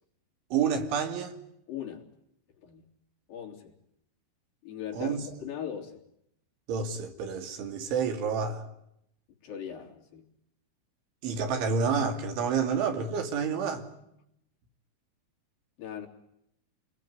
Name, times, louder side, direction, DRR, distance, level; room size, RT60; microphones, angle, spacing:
voice 1, 0.5-1.4 4.9-5.5 6.7-8.6 11.2-13.9, right 6 dB, 80° right, 5.1 m, -29 dB
voice 2, 1.7-2.0 2.6-2.8 3.3-3.7 4.6-6.0 9.4-10.2 15.8-16.1, left 9 dB, 50° left, 4.8 m, -39 dB
29.5 x 21.0 x 9.6 m
omnidirectional pair, 5.4 m